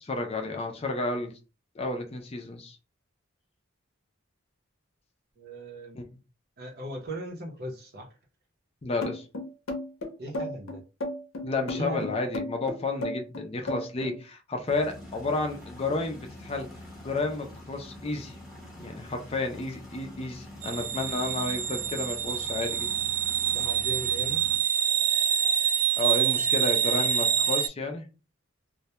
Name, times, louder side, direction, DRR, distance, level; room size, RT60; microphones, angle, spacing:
voice 1, 0.0-1.4 1.8-2.8 5.9-6.0 8.8-9.3 11.4-16.7 17.0-18.3 18.8-22.9 26.0-28.1, left 3 dB, 30° left, 0.4 m, -31 dB
voice 2, 5.4-6.0 6.6-8.1 10.2-10.8 11.7-12.2 23.5-24.5, right 1 dB, 50° right, 0.7 m, -38 dB
sound 1, 9.0-14.2, left 1 dB, 70° left, 0.6 m, -33 dB
sound 2, 14.7-24.6, left 1 dB, ahead, 0.8 m, -45 dB
sound 3, 20.6-27.7, right 9 dB, 80° right, 0.4 m, -26 dB
2.2 x 2.1 x 2.8 m
head